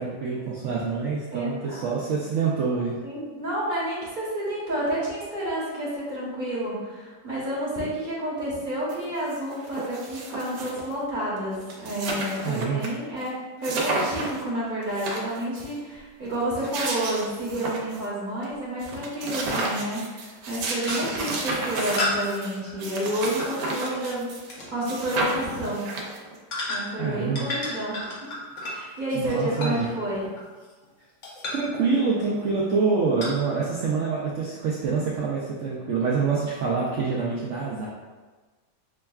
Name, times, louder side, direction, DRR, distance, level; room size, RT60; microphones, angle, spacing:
voice 1, 0.0-2.9 12.4-12.9 27.0-27.5 29.1-29.9 31.5-37.9, right 5 dB, 70° right, -5 dB, 0.7 m, -26 dB
voice 2, 1.3-1.9 3.0-13.3 13.6-25.8 26.7-28.3 28.7-30.2, right 1 dB, 35° right, -8 dB, 0.9 m, -30 dB
sound 1, 8.9-9.0 9.3-10.9 11.4-11.5 11.6-12.9 13.2-13.3 13.6-14.4 14.8-15.7 16.4-18.1 18.4-18.5 18.8-24.6 24.8-26.4, right 2 dB, 90° right, 1.3 m, -32 dB
sound 2, 15.9-16.0 18.5-18.6 19.8-20.0 20.4-20.6 20.9-21.3 22.0-24.1 24.5-24.7 25.4-25.6 26.5-27.1 27.3-30.9 31.2-31.7 32.2-32.5 33.2-33.3, left 1 dB, 55° left, 1.1 m, -33 dB
6.0 x 2.2 x 2.3 m, 1.3 s
omnidirectional pair, 1.8 m